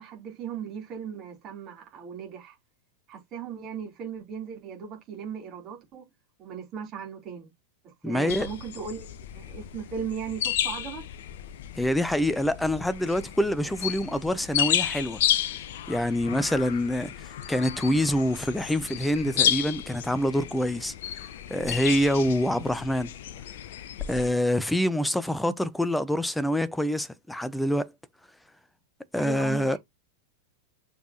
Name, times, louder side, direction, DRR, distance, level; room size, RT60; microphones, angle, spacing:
voice 1, 0.0-2.6 3.1-6.1 6.4-7.5 7.8-11.0 29.2-29.8, right 7 dB, 35° right, 3.8 m, -37 dB
voice 2, 8.0-8.5 11.8-15.2 15.9-20.9 21.5-23.1 24.1-27.9 29.1-29.8, equal, 5° left, 0.8 m, -26 dB
sound 1, 8.3-24.3, left 10 dB, 55° left, 0.8 m, -32 dB
6.8 x 5.1 x 3.1 m
figure-of-eight pair, 90°, 0 cm